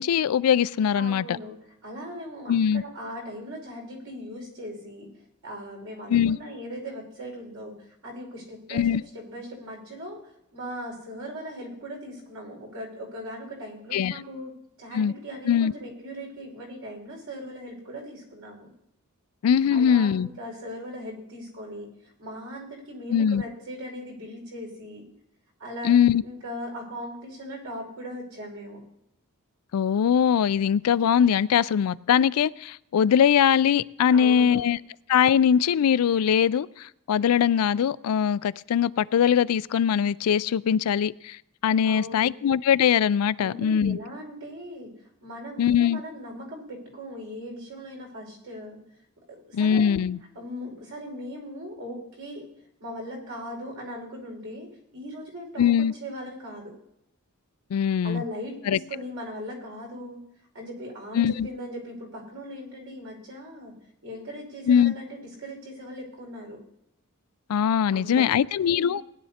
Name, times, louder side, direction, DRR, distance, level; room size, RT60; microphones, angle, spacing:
voice 1, 0.0-1.4 2.5-2.8 6.1-6.4 8.7-9.0 13.9-14.1 14.9-15.1 15.5-15.7 19.4-20.3 23.1-23.4 25.8-26.2 29.7-34.8 35.1-41.4 41.6-44.0 45.6-46.0 49.5-50.2 55.6-55.9 57.7-58.2 58.7-58.8 61.2-61.5 64.7-64.9 67.5-69.0, left 8 dB, 90° left, 0.4 m, -21 dB
voice 2, 0.9-1.6 1.8-5.1 5.4-14.5 14.8-18.7 19.7-25.0 25.6-28.8 34.1-34.6 41.8-42.3 43.4-44.9 45.2-48.8 49.5-50.1 50.3-52.4 52.8-54.7 54.9-56.8 58.0-60.2 60.5-63.7 64.0-66.6 67.9-68.9, equal, 75° right, 5.1 m, -39 dB
20.0 x 11.0 x 2.9 m
head